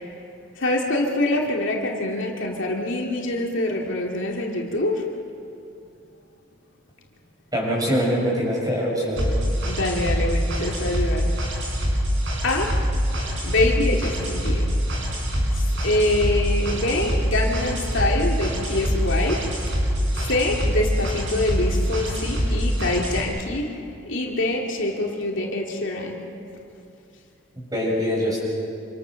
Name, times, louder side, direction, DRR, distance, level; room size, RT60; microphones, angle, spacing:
voice 1, 0.6-5.0 9.7-11.3 12.4-12.7 13.4-14.7 15.5-19.4 20.1-26.3, left 2 dB, 65° left, 0 dB, 2.6 m, -25 dB
voice 2, 7.5-9.3 27.6-28.4, equal, 20° right, -3 dB, 6.4 m, -23 dB
sound 1, 9.2-23.2, equal, 65° right, 6.3 m, -24 dB
27.0 x 26.5 x 6.5 m, 2.6 s
head